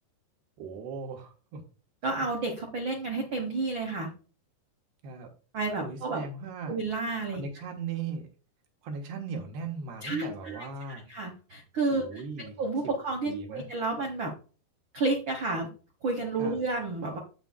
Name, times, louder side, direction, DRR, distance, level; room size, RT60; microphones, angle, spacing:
voice 1, 0.6-1.6 5.0-5.3 5.8-6.8 7.3-8.3 8.8-11.1 11.9-12.6 13.2-13.7 16.4-16.6, right 5 dB, 85° right, 3 dB, 3.2 m, -38 dB
voice 2, 2.0-4.1 5.5-6.2 6.7-7.4 10.0-14.3 14.9-15.7 16.0-17.2, right 3 dB, 65° right, 2 dB, 1.1 m, -31 dB
8.9 x 8.3 x 2.3 m, 0.35 s
omnidirectional pair, 4.4 m